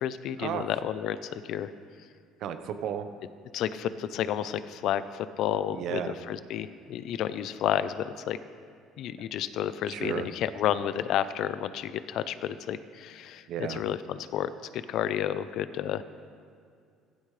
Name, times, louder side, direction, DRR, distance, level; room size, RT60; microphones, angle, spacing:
voice 1, 0.0-1.7 3.5-6.0 6.3-8.4 9.0-13.4 13.7-16.0, left 10 dB, 65° left, 14 dB, 0.6 m, -31 dB
voice 2, 2.4-3.1 5.7-6.1 9.9-10.3 13.5-13.8, right 9 dB, 60° right, 8 dB, 0.9 m, -33 dB
15.5 x 15.0 x 3.3 m, 2.3 s
cardioid pair, 110°, 0 cm